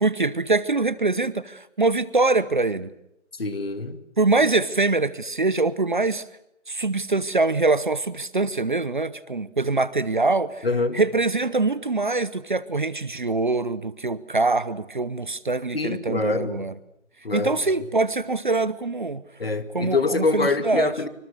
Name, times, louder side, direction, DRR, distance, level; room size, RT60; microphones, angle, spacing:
voice 1, 0.0-2.9 4.2-6.2 6.7-10.7 10.9-16.7 17.3-19.2 19.7-20.9, right 3 dB, 40° right, 1.0 m, -23 dB
voice 2, 3.4-4.0 10.6-11.0 15.7-16.7 17.2-17.6 19.4-21.1, left 3 dB, 50° left, 2.4 m, -25 dB
26.5 x 25.0 x 6.6 m
figure-of-eight pair, 160°, 37 cm